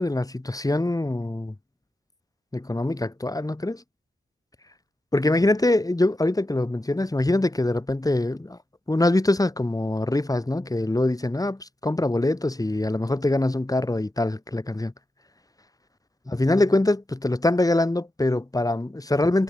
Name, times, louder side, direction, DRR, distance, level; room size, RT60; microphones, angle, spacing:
voice 1, 0.0-1.5 2.5-3.8 5.1-8.6 8.9-14.9 16.3-19.4, left 2 dB, 20° left, 3.2 m, -23 dB
wide cardioid pair, 85°, 18 cm